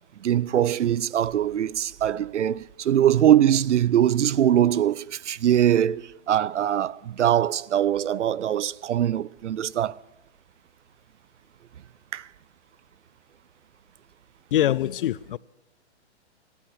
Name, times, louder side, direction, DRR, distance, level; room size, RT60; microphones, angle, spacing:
voice 1, 0.2-10.0 12.1-12.3, right 10 dB, 85° right, 0.6 m, -22 dB
voice 2, 14.5-15.4, left 12 dB, 50° left, 0.5 m, -23 dB
13.5 x 11.5 x 6.3 m
hypercardioid pair, 135°, 35 cm